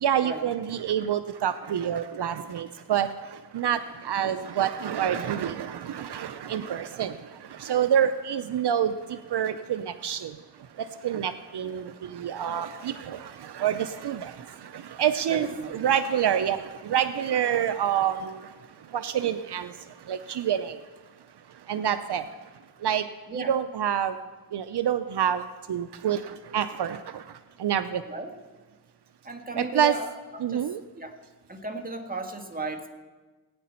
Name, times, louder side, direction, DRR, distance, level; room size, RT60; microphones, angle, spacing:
voice 1, 0.0-3.1 3.5-7.2 7.5-10.3 10.8-18.5 18.9-19.7 20.1-20.8 21.7-22.2 22.8-23.0 23.3-24.2 24.5-25.4 25.7-27.2 27.6-28.0 29.6-29.9 30.4-30.8, right 9 dB, 75° right, 11 dB, 0.6 m, -27 dB
voice 2, 15.3-15.8 23.3-23.6 28.0-28.3 29.2-30.1 30.3-31.2 31.5-32.9, right 3 dB, 20° right, 4 dB, 1.7 m, -35 dB
18.0 x 9.4 x 4.4 m, 1.3 s
cardioid pair, 55°, 40 cm